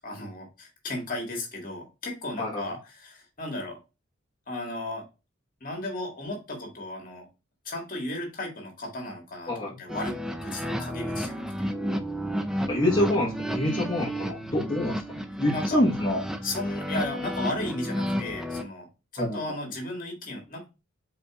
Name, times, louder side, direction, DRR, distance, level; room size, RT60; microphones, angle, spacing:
voice 1, 0.0-3.8 4.5-5.0 5.6-7.3 7.6-10.1 10.4-11.7 15.5-15.8 16.4-18.9 19.1-20.6, left 2 dB, 40° left, 1 dB, 1.7 m, -35 dB
voice 2, 9.5-9.8 12.7-16.2 19.2-19.6, left 1 dB, 20° left, -5 dB, 1.1 m, -27 dB
sound 1, 9.9-18.6, equal, ahead, 0.4 m, -31 dB
5.0 x 3.9 x 2.3 m, 0.27 s
head